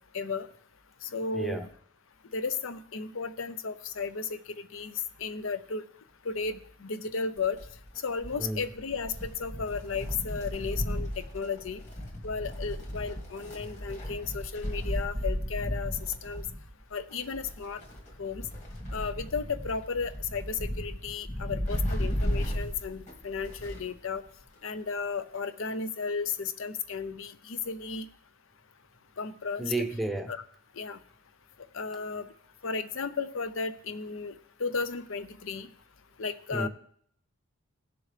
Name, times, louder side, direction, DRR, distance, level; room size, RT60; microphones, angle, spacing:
voice 1, 0.1-0.5 1.0-1.6 2.3-5.8 6.2-7.6 8.0-11.8 12.2-16.4 16.9-17.8 18.2-18.5 18.9-24.2 24.6-28.1 29.2-29.7 30.3-30.4 30.8-31.0 31.7-32.3 32.6-34.3 34.6-35.7 36.2-36.7, left 5 dB, 65° left, 13 dB, 0.6 m, -34 dB
voice 2, 1.3-1.7 8.4-8.6 29.6-30.3 36.5-36.7, right 2 dB, ahead, 3 dB, 0.7 m, -31 dB
Wind, 7.4-24.0 24.3-24.4 25.4-25.5, equal, 35° left, 2.2 m, -35 dB
17.5 x 6.9 x 3.3 m, 0.63 s
head